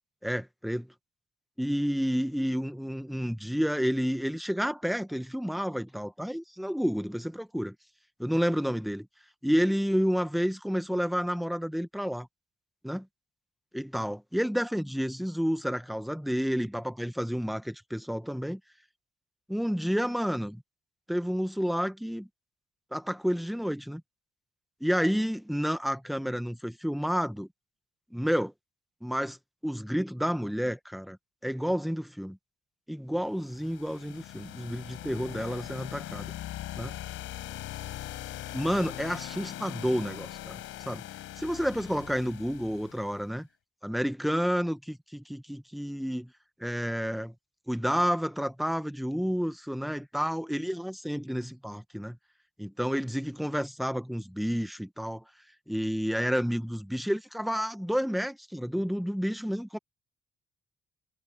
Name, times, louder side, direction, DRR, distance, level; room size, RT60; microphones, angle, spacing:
voice 1, 0.2-0.9 1.6-7.7 8.2-9.1 9.4-12.3 12.8-13.1 13.7-18.6 19.5-20.6 21.1-22.3 22.9-24.0 24.8-27.5 28.1-28.5 29.0-29.4 29.6-31.2 31.4-32.4 32.9-36.3 36.8-37.0 38.5-41.0 41.4-43.5 43.8-46.3 46.6-47.3 47.7-52.2 52.6-55.2 55.7-59.8, equal, ahead, 1.5 m, -30 dB
sound 1, 33.4-43.2, left 14 dB, 90° left, 4.9 m, -41 dB
cardioid pair, 90°, 20 cm